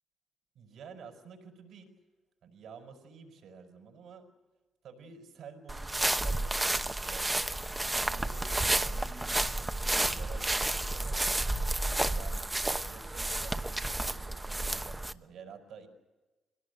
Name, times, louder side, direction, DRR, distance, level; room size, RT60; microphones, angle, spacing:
voice 1, 0.5-1.9 2.4-4.2 4.8-7.5 7.8-11.3 12.1-15.9, right 5 dB, 75° right, 3 dB, 5.5 m, -51 dB
sound 1, 5.7-15.1, right 2 dB, 15° right, 0.9 m, -31 dB
24.5 x 18.0 x 8.2 m, 1.2 s
cardioid pair, 90°, 0 cm